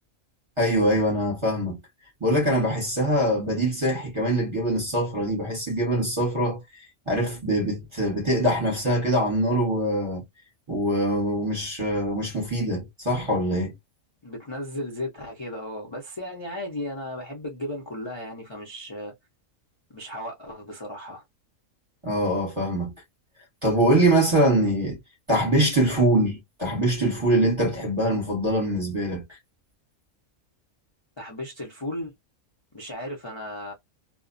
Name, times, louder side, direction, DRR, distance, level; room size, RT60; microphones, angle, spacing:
voice 1, 0.6-1.8 2.2-6.6 7.1-10.2 10.7-13.7 22.0-22.9 23.6-25.0 25.3-29.2, right 1 dB, 25° right, 0.9 m, -23 dB
voice 2, 14.2-19.1 19.9-21.2 31.2-32.1 32.7-33.7, left 1 dB, 30° left, 0.6 m, -35 dB
2.3 x 2.1 x 2.5 m
omnidirectional pair, 1.3 m